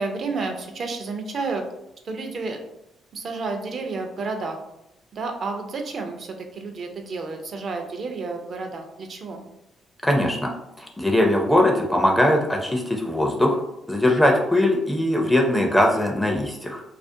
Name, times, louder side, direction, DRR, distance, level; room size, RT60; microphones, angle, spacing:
voice 1, 0.0-1.6 2.0-2.6 3.1-4.6 5.1-9.4, right 3 dB, 55° right, 4 dB, 0.4 m, -30 dB
voice 2, 10.0-10.5 10.8-13.6 13.9-16.8, left 1 dB, 5° left, 1 dB, 0.4 m, -20 dB
2.4 x 2.1 x 2.6 m, 0.85 s
cardioid pair, 90°, 0 cm